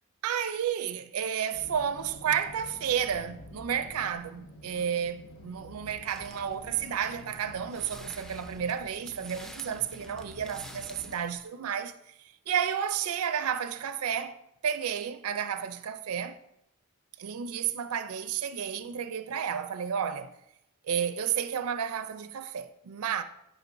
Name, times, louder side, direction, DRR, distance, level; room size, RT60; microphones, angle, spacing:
voice 1, 0.2-11.9 12.5-14.4 14.6-16.4 17.2-20.3 20.8-23.2, right 8 dB, 80° right, 0.4 m, -31 dB
sound 1, 1.5-11.2, left 2 dB, 85° left, 0.7 m, -49 dB
sound 2, 6.1-11.4, equal, ahead, 0.3 m, -50 dB
11.0 x 5.0 x 2.6 m
head